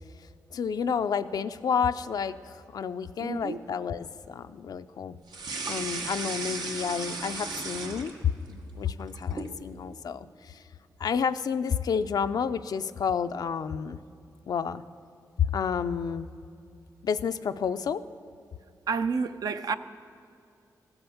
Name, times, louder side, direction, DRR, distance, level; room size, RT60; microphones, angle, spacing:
voice 1, 0.5-5.1 5.7-8.1 8.5-10.6 11.0-14.0 14.5-14.8 15.4-16.3 17.0-18.0, left 7 dB, 70° left, 0.4 m, -30 dB
voice 2, 3.2-3.6 18.9-19.8, right 5 dB, 65° right, 0.5 m, -29 dB
sound 1, 5.3-8.5 8.9-9.6, right 3 dB, 85° right, 1.1 m, -35 dB
15.0 x 7.9 x 7.0 m
cardioid pair, 85°, 7 cm